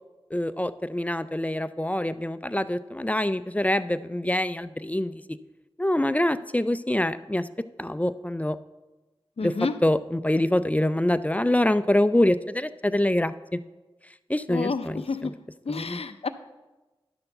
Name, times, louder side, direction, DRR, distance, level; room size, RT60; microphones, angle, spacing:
voice 1, 0.3-5.2 5.8-7.5 7.8-8.6 9.4-9.5 9.8-13.6 14.3-15.3 15.7-16.0, left 1 dB, 15° left, 13 dB, 0.3 m, -25 dB
voice 2, 9.4-9.8 14.5-15.3 15.7-16.3, left 4 dB, 80° left, 10 dB, 0.5 m, -30 dB
10.5 x 4.5 x 6.5 m, 1.1 s
wide cardioid pair, 55°, 10 cm